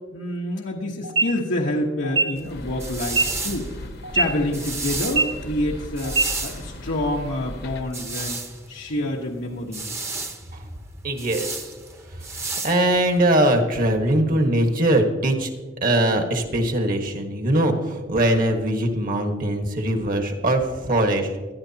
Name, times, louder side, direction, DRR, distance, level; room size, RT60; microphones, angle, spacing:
voice 1, 0.1-8.4 8.7-10.0, left 1 dB, 85° left, -2 dB, 1.2 m, -27 dB
sound 1, 1.0-1.2 2.0-2.2 3.0-3.2 4.0-4.2 5.0-5.2 6.0-6.2, right 3 dB, 70° right, 2.2 m, -20 dB
sound 2, 2.4-13.3, right 3 dB, 15° right, 0.9 m, -33 dB
sound 3, 2.5-7.8, left 1 dB, 60° left, 1.1 m, -37 dB
voice 2, 11.0-11.6 12.6-15.5 15.8-21.3, right 1 dB, 50° right, 4 dB, 1.5 m, -21 dB
20.0 x 12.5 x 2.9 m, 1.4 s
head